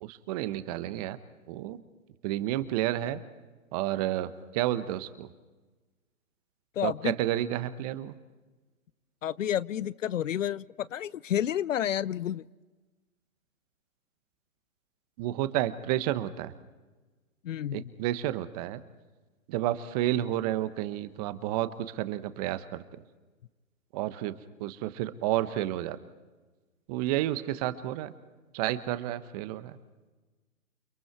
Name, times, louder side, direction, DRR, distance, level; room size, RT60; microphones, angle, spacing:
voice 1, 0.0-1.2 1.5-1.8 2.2-3.2 3.7-5.3 6.8-8.1 15.2-16.5 17.7-18.8 19.5-22.8 23.9-24.3 24.6-26.0 26.9-28.1 28.5-29.8, right 14 dB, 25° right, 13 dB, 1.0 m, -30 dB
voice 2, 6.8-7.1 9.2-12.5 17.4-17.9 25.6-25.7, left 10 dB, 65° left, 21 dB, 0.6 m, -30 dB
29.5 x 23.5 x 4.7 m, 1.3 s
hypercardioid pair, 135°, 42 cm